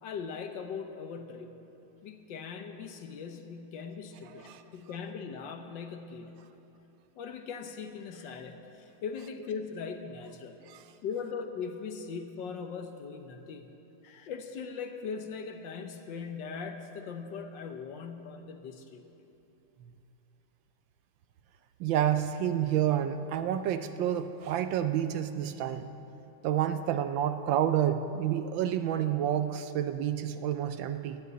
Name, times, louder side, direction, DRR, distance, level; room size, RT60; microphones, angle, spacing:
voice 1, 0.0-1.5 2.0-6.4 7.2-10.6 11.0-13.7 14.0-19.3, left 5 dB, 65° left, 6 dB, 1.4 m, -40 dB
voice 2, 21.8-25.9 26.4-31.2, right 10 dB, 75° right, 10 dB, 1.2 m, -29 dB
11.0 x 10.5 x 7.9 m, 2.9 s
omnidirectional pair, 2.2 m